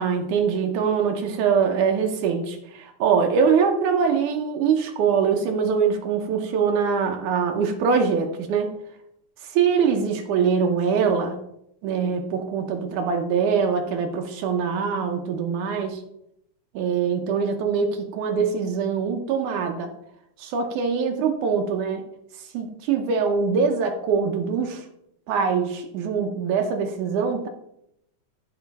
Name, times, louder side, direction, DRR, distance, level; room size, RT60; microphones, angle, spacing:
voice 1, 0.0-8.7 9.4-11.4 11.8-16.0 16.7-19.9 20.4-22.1 22.5-24.9 25.3-27.5, right 6 dB, 80° right, 4 dB, 2.3 m, -23 dB
13.0 x 4.3 x 4.1 m, 0.78 s
omnidirectional pair, 3.5 m